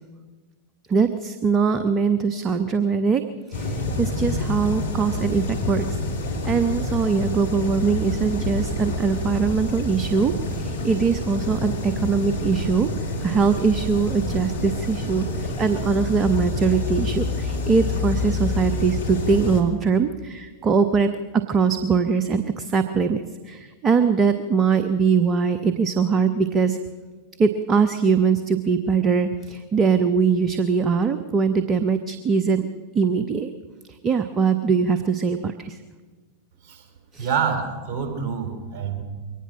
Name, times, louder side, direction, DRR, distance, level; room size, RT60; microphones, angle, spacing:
voice 1, 0.9-3.2 3.5-6.0 6.4-12.9 13.2-26.8 27.4-32.7 32.9-33.5 33.9-35.8 37.1-37.3, right 5 dB, 25° right, 10 dB, 1.0 m, -22 dB
sound 1, 3.5-19.6, left 2 dB, 65° left, 3.2 m, -27 dB
voice 2, 37.2-39.0, right 6 dB, 40° right, 5 dB, 4.6 m, -27 dB
23.0 x 18.5 x 6.3 m, 1.4 s
figure-of-eight pair, 90°, 0 cm